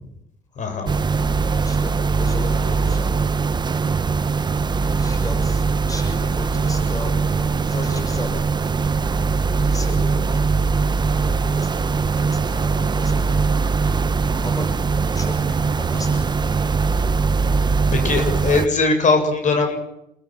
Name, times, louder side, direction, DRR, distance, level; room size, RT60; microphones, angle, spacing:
voice 1, 0.6-0.9 18.0-19.8, left 3 dB, 45° left, 5 dB, 7.8 m, -20 dB
sound 1, 0.9-18.7, right 4 dB, 25° right, 1.1 m, -21 dB
voice 2, 1.6-3.4 5.0-8.5 9.6-10.7 11.2-13.4 14.4-14.7 15.1-16.7, left 2 dB, 20° left, 5 dB, 6.6 m, -36 dB
28.5 x 15.0 x 9.3 m, 0.82 s
cardioid pair, 110°, 17 cm